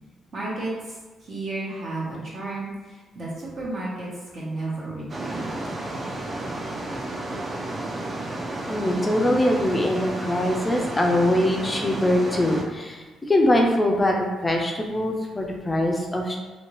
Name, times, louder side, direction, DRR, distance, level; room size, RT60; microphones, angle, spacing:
voice 1, 0.3-1.0 1.2-4.1 4.3-5.5, right 2 dB, 55° right, -5 dB, 1.1 m, -32 dB
sound 1, 5.1-12.6, right 2 dB, 35° right, 0.5 m, -32 dB
voice 2, 8.7-16.4, left 1 dB, 20° left, 0 dB, 0.4 m, -23 dB
2.8 x 2.7 x 3.0 m, 1.2 s
cardioid pair, 90°, 0 cm